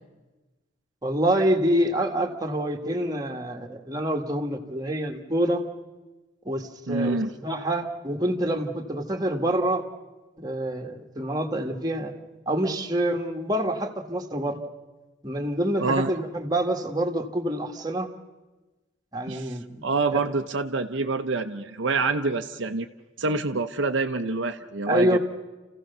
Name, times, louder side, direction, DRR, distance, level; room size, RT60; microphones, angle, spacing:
voice 1, 1.0-5.6 6.4-9.8 10.4-12.1 12.5-14.6 15.2-18.1 19.1-19.9 20.1-20.2 24.9-25.2, right 1 dB, 20° right, 3 dB, 1.6 m, -26 dB
voice 2, 6.9-7.3 15.8-16.1 19.3-22.9 23.2-25.2, right 3 dB, 65° right, 6 dB, 0.8 m, -26 dB
29.0 x 15.5 x 6.8 m, 1.2 s
head